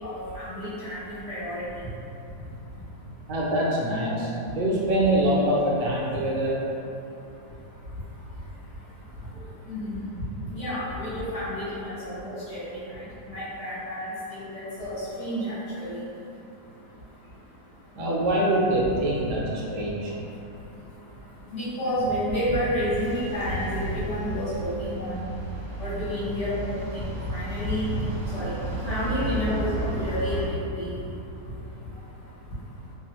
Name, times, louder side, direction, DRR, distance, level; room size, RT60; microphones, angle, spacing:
voice 1, 0.0-1.6 9.7-10.2 10.5-12.8 13.3-14.5 14.8-15.9 21.5-25.2 25.8-27.9 28.3-28.5 28.8-30.9, equal, 50° left, -12 dB, 1.1 m, -30 dB
voice 2, 3.3-6.6 17.9-20.1, right 1 dB, 80° right, -5 dB, 1.2 m, -24 dB
sound 1, 23.0-30.5, right 1 dB, 65° right, 0.8 m, -34 dB
2.9 x 2.3 x 2.9 m, 2.8 s
omnidirectional pair, 1.8 m